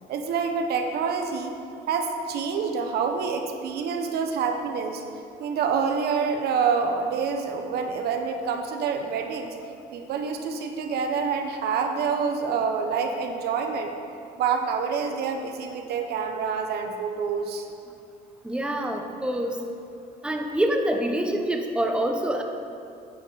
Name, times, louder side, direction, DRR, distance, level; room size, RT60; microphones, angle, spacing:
voice 1, 0.1-1.5 1.9-5.0 5.4-9.5 9.9-13.9 14.4-17.7, right 5 dB, 70° right, 4 dB, 1.0 m, -27 dB
voice 2, 18.4-19.6 20.2-22.4, right 1 dB, 5° right, 3 dB, 0.9 m, -26 dB
10.0 x 9.4 x 4.1 m, 2.5 s
cardioid pair, 110°, 17 cm